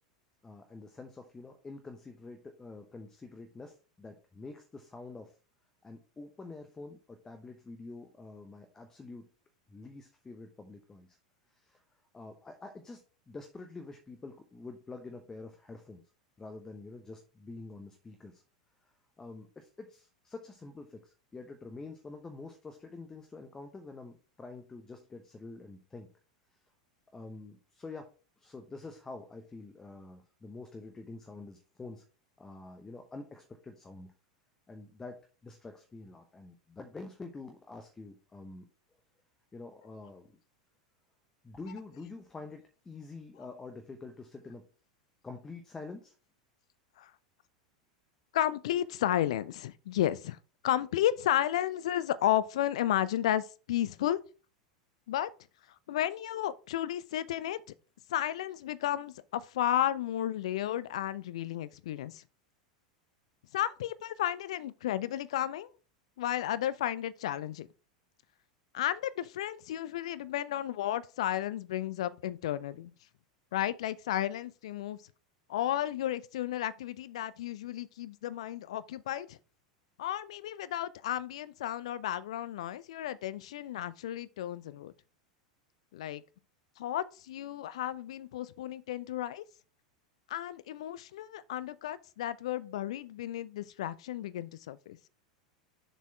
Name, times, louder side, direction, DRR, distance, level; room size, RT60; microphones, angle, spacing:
voice 1, 0.4-5.3 5.8-9.3 9.7-11.2 11.5-11.8 12.1-16.0 16.4-18.4 18.8-26.1 27.1-32.0 32.4-34.1 34.7-38.7 39.5-40.4 41.4-44.7 45.2-46.2, left 3 dB, 15° left, 0.9 m, -47 dB
voice 2, 48.3-50.4 50.6-54.2 55.1-55.3 55.9-57.6 58.1-62.2 63.5-65.7 66.2-67.7 68.7-72.9 73.5-75.0 75.5-79.4 80.0-84.9 85.9-86.2 86.8-89.4 90.3-95.0, left 12 dB, 60° left, 0.5 m, -33 dB
7.2 x 4.2 x 4.3 m
figure-of-eight pair, 85°, 4 cm